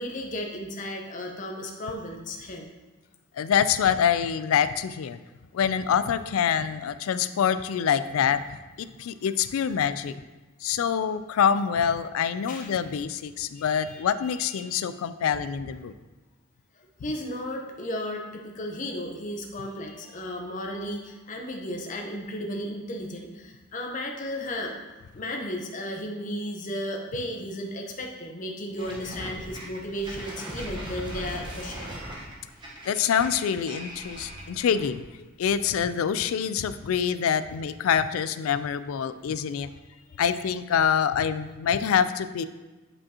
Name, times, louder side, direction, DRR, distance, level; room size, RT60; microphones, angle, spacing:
voice 1, 0.0-2.7 12.5-12.8 13.6-14.8 17.0-18.2 18.5-24.7 25.1-32.0, left 1 dB, 40° left, 1 dB, 0.8 m, -34 dB
voice 2, 3.4-5.2 5.5-8.4 8.8-10.1 10.6-15.9 32.9-35.0 35.4-39.7 40.2-42.5, left 8 dB, 85° left, 14 dB, 0.3 m, -25 dB
sound 1, 28.8-35.0, right 1 dB, 20° right, 1.0 m, -39 dB
8.5 x 5.2 x 2.8 m, 1.2 s
head